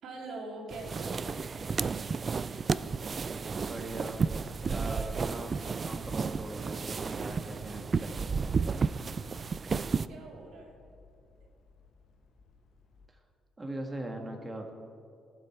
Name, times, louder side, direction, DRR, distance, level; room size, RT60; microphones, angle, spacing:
voice 1, 0.0-1.4 9.8-10.8, right 2 dB, 75° right, 0 dB, 2.6 m, -43 dB
sound 1, 0.7-10.1, right 5 dB, 40° right, 0.3 m, -32 dB
sound 2, 1.5-13.1, left 4 dB, 70° left, 1.4 m, -60 dB
voice 2, 3.6-4.3 4.7-5.6 5.8-8.5 13.6-14.8, right 1 dB, 20° right, 3 dB, 1.8 m, -40 dB
18.5 x 7.7 x 4.6 m, 2.4 s
cardioid pair, 90°, 0 cm